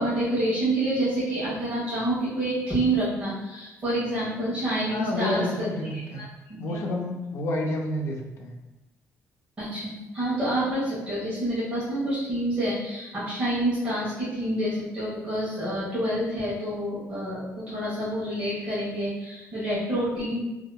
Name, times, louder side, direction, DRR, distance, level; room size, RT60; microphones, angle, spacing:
voice 1, 0.0-5.7 5.9-6.2 6.5-6.8 9.6-20.4, right 1 dB, 20° right, -11 dB, 1.2 m, -28 dB
voice 2, 4.9-6.2 6.6-8.5, left 1 dB, 55° left, 1 dB, 0.5 m, -29 dB
3.0 x 2.7 x 2.2 m, 1.1 s
cardioid pair, 170°, 5 cm